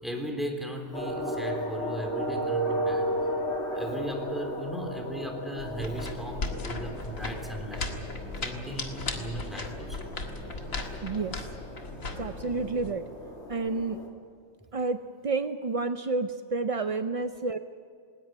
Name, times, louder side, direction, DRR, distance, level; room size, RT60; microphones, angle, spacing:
voice 1, 0.0-3.1 3.7-7.9 8.4-10.1, equal, ahead, 3 dB, 3.4 m, -37 dB
sound 1, 0.9-14.1, equal, 55° left, 3.2 m, -35 dB
sound 2, 5.6-12.9, left 3 dB, 75° left, 2.3 m, -37 dB
voice 2, 11.0-11.4 12.2-13.1 13.5-14.0 14.7-15.0 15.2-17.6, right 3 dB, 55° right, 9 dB, 0.4 m, -29 dB
19.5 x 19.0 x 9.4 m, 2.1 s
omnidirectional pair, 1.4 m